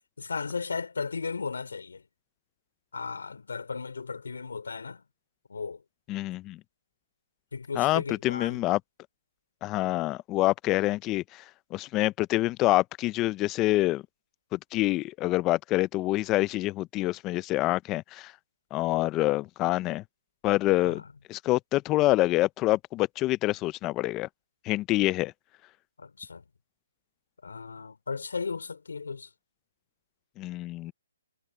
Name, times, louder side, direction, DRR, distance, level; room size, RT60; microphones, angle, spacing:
voice 1, 0.2-2.0 2.9-5.0 5.5-5.8 7.5-8.6 20.8-21.0 26.0-26.4 27.4-29.3, left 5 dB, 85° left, 5.1 m, -35 dB
voice 2, 6.1-6.6 7.8-8.8 9.6-11.4 11.7-14.0 14.5-18.3 18.7-20.0 20.4-21.0 21.3-24.3 24.6-25.3 30.4-30.9, left 18 dB, 20° left, 0.6 m, -26 dB
hypercardioid pair, 150°, 0 cm